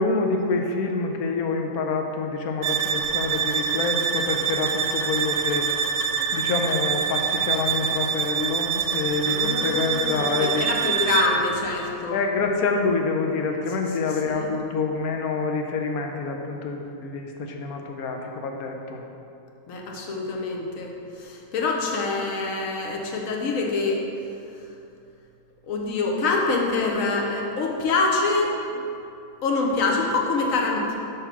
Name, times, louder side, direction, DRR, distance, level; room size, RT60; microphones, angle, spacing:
voice 1, 0.0-5.7 6.3-10.7 12.1-19.0, left 4 dB, 90° left, 3 dB, 1.1 m, -27 dB
sound 1, 2.6-11.4, right 7 dB, 70° right, 0.8 m, -25 dB
voice 2, 9.2-12.2 14.2-14.5 19.7-24.0 25.7-28.5 29.4-31.0, left 3 dB, 65° left, 0 dB, 1.2 m, -25 dB
6.3 x 3.3 x 5.8 m, 2.6 s
omnidirectional pair, 1.5 m